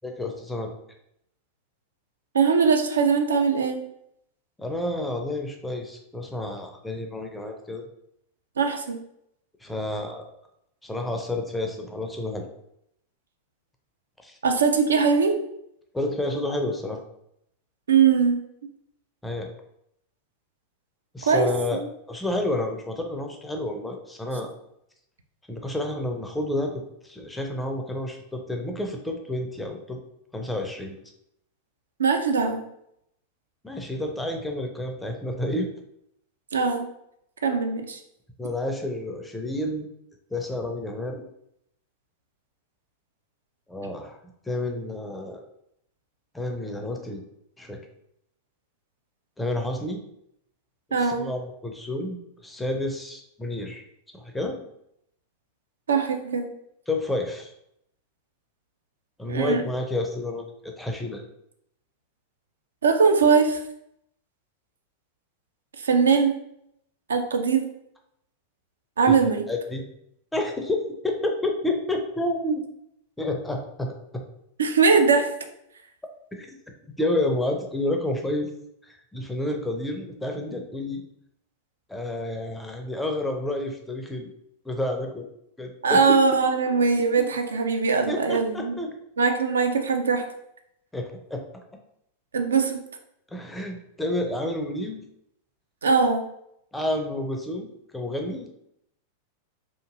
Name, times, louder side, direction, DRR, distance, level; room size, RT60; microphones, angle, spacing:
voice 1, 0.0-0.7 4.6-7.8 9.6-10.2 10.8-12.5 14.2-14.4 15.9-17.0 19.2-19.5 21.1-21.8 22.1-24.5 25.5-30.0 30.3-31.0 33.6-35.7 38.4-39.9 40.3-41.2 43.7-44.2 44.5-45.4 46.3-47.2 47.6-47.8 49.4-50.0 50.9-53.8 54.1-54.6 56.9-57.5 59.2-61.2 69.1-69.2 69.5-69.8 70.3-72.6 73.2-73.9 76.3-76.5 77.0-78.5 78.8-81.0 81.9-84.3 84.6-85.3 85.6-86.1 86.9-87.3 88.1-88.9 90.9-91.6 93.3-95.0 96.7-98.5, left 1 dB, 5° left, 3 dB, 0.4 m, -30 dB
voice 2, 2.3-3.8 8.6-9.0 14.4-15.3 17.9-18.4 21.3-21.9 32.0-32.6 36.5-36.9 37.4-38.0 50.9-51.3 55.9-56.5 59.3-59.6 62.8-63.6 65.8-66.3 67.1-67.7 69.0-69.4 74.6-75.3 85.8-88.8 89.2-90.2 92.3-92.8 95.8-96.2, right 5 dB, 70° right, 5 dB, 0.3 m, -21 dB
2.8 x 2.5 x 2.4 m, 0.76 s
figure-of-eight pair, 90°, 0 cm